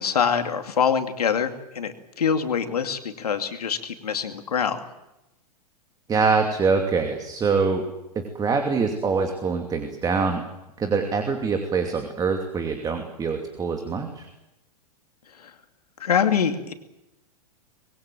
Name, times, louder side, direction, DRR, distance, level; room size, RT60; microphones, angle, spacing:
voice 1, 0.0-4.8 15.4-15.5 16.0-16.7, left 7 dB, 70° left, 7 dB, 2.6 m, -24 dB
voice 2, 6.1-7.8 8.1-10.4 10.8-14.3, right 5 dB, 20° right, 5 dB, 2.7 m, -24 dB
25.0 x 21.5 x 7.7 m, 0.93 s
figure-of-eight pair, 105°, 20 cm